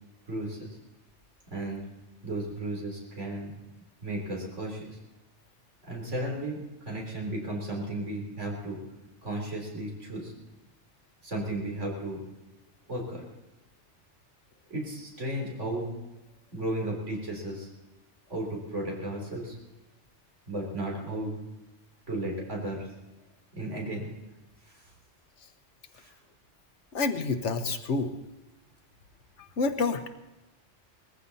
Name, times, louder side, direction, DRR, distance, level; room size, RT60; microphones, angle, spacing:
voice 1, 0.3-0.7 1.5-1.9 2.2-3.6 4.0-5.0 5.9-8.8 9.2-10.3 11.2-12.2 12.9-13.2 14.7-15.9 16.5-17.7 18.3-19.6 20.5-21.4 22.1-22.9 23.5-24.1 24.7-24.8 26.0-26.1, right 1 dB, 90° right, -1 dB, 4.1 m, -34 dB
voice 2, 26.9-28.1 29.4-30.1, left 4 dB, 80° left, 9 dB, 1.3 m, -28 dB
20.0 x 14.5 x 4.1 m, 1.1 s
omnidirectional pair, 1.2 m